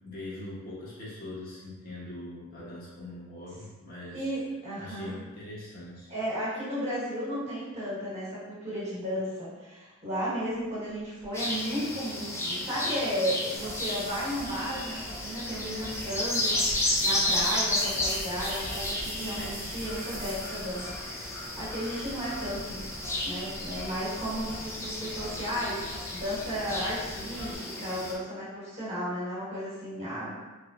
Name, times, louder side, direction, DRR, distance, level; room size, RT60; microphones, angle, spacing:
voice 1, 0.0-4.2 4.8-6.1, left 1 dB, 45° left, -7 dB, 1.0 m, -42 dB
voice 2, 4.1-5.1 6.1-20.9 21.2-22.8 23.2-30.3, equal, 35° right, -9 dB, 1.3 m, -34 dB
sound 1, 10.4-20.8, right 1 dB, 50° right, 1.0 m, -44 dB
sound 2, 11.3-28.1, left 1 dB, 15° left, 0.5 m, -33 dB
Traffic noise roadway noise / Drip / Trickle dribble, 13.5-27.5, left 1 dB, 80° left, 1.2 m, -46 dB
3.4 x 3.4 x 2.5 m, 1.2 s
head